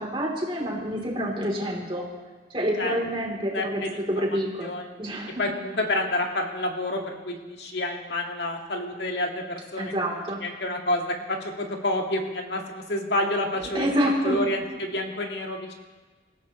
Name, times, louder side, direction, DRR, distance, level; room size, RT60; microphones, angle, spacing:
voice 1, 0.0-2.0 2.5-4.7 5.0-5.4 9.8-10.4 13.7-14.4, equal, 30° right, -2 dB, 3.4 m, -27 dB
voice 2, 3.5-4.2 4.6-4.9 5.4-9.9 10.4-13.9 14.2-15.7, left 1 dB, 75° left, 2 dB, 2.0 m, -29 dB
26.5 x 15.0 x 3.2 m, 1.3 s
head